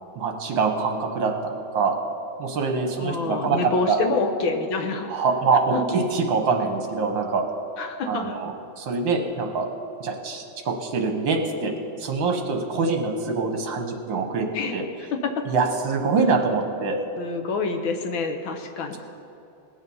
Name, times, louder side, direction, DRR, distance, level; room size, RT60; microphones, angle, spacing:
voice 1, 0.2-2.0 2.4-3.6 3.9-4.0 5.1-7.4 8.1-8.5 8.8-9.7 10.0-11.7 12.0-14.5 14.7-14.8 15.5-17.0, right 4 dB, 65° right, 3 dB, 1.8 m, -24 dB
voice 2, 3.0-5.1 5.7-5.8 7.8-8.4 14.5-14.7 15.2-15.3 17.2-19.0, left 3 dB, 70° left, 5 dB, 1.7 m, -27 dB
20.0 x 7.3 x 5.5 m, 2.8 s
omnidirectional pair, 2.3 m